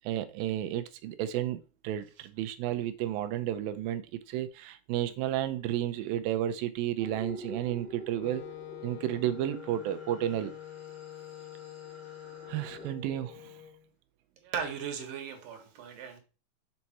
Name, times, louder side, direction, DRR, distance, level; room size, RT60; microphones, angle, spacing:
voice 1, 0.0-8.4 8.8-10.5 12.5-13.5, right 12 dB, 90° right, 10 dB, 2.5 m, -32 dB
sound 1, 7.0-12.9, right 1 dB, 5° right, 1.3 m, -47 dB
Wind instrument woodwind instrument, 8.2-13.9, left 12 dB, 85° left, 1.5 m, -46 dB
voice 2, 14.4-16.2, right 7 dB, 75° right, 5 dB, 2.8 m, -37 dB
7.4 x 4.7 x 4.2 m, 0.34 s
omnidirectional pair, 4.0 m